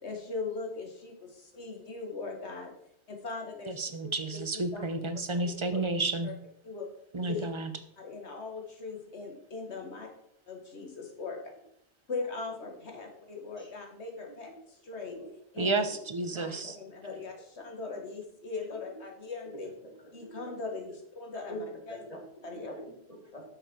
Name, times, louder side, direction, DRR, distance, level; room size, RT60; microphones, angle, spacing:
voice 1, 0.0-2.7 3.1-3.9 4.3-4.8 5.3-5.9 6.2-6.3 6.6-6.9 7.2-7.5 8.0-10.1 10.5-11.4 12.1-15.2 15.5-15.8 16.3-19.7 20.1-22.0 22.4-22.7, left 4 dB, 75° left, 2 dB, 1.9 m, -40 dB
voice 2, 3.7-6.3 7.1-7.7 15.6-16.8, right 3 dB, 30° right, 9 dB, 0.7 m, -31 dB
voice 3, 14.9-15.3 15.6-15.8 16.4-16.7 17.0-17.2 19.8-19.9 20.2-20.5 21.5-23.4, equal, 35° left, 0 dB, 2.1 m, -44 dB
8.4 x 6.8 x 4.5 m, 0.71 s
omnidirectional pair, 1.1 m